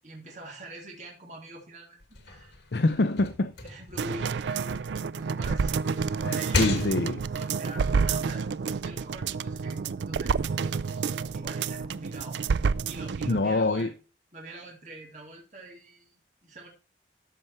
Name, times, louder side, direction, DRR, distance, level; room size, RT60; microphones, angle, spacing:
voice 1, 0.0-2.5 2.8-3.0 3.6-5.7 6.3-6.7 7.3-8.5 8.8-12.4 12.9-13.9 14.3-16.7, right 1 dB, 40° right, 2.8 m, -45 dB
sound 1, 2.0-5.2 5.6-7.4, left 3 dB, 90° left, 2.0 m, -35 dB
voice 2, 2.7-3.5 6.2-7.3 13.3-13.9, left 2 dB, 70° left, 0.6 m, -25 dB
sound 2, 4.0-13.4 13.8-13.9, right 5 dB, 85° right, 0.4 m, -29 dB
13.0 x 5.6 x 4.6 m
head